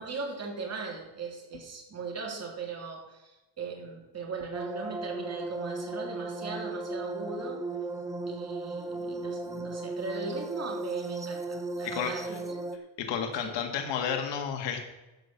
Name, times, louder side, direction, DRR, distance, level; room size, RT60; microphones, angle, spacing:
voice 1, 0.0-7.6 8.3-12.6 13.3-13.5, right 4 dB, 35° right, 0 dB, 3.2 m, -39 dB
sound 1, 4.5-12.8, right 2 dB, 10° right, 0.8 m, -36 dB
voice 2, 13.0-14.8, left 7 dB, 85° left, 4 dB, 1.8 m, -31 dB
13.0 x 5.2 x 7.1 m, 1.0 s
cardioid pair, 120°, 42 cm